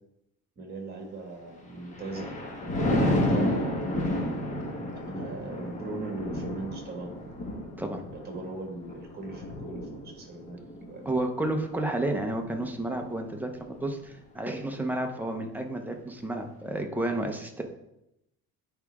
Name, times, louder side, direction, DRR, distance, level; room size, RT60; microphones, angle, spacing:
voice 1, 0.5-2.3 3.0-4.2 5.1-7.4 8.1-11.0, right 2 dB, 30° right, 1 dB, 1.7 m, -40 dB
Thunder, 1.6-13.1 13.5-13.9, left 1 dB, 20° left, 1.0 m, -31 dB
voice 2, 11.1-17.6, right 1 dB, 5° right, 3 dB, 0.5 m, -31 dB
8.8 x 4.7 x 3.5 m, 0.86 s
cardioid pair, 180°, 32 cm